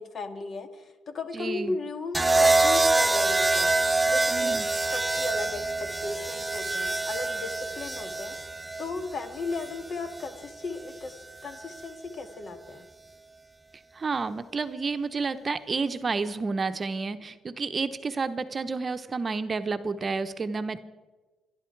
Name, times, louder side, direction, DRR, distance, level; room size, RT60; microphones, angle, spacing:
voice 1, 0.0-3.7 4.1-11.1 11.4-12.8, left 3 dB, 50° left, 7 dB, 2.0 m, -36 dB
voice 2, 1.3-1.8 4.3-4.7 13.9-20.8, right 4 dB, 35° right, 10 dB, 0.9 m, -30 dB
sound 1, 2.1-10.3 11.5-11.9, right 2 dB, 15° right, 0.5 m, -26 dB
25.5 x 11.5 x 4.7 m, 1.2 s
cardioid pair, 90°, 0 cm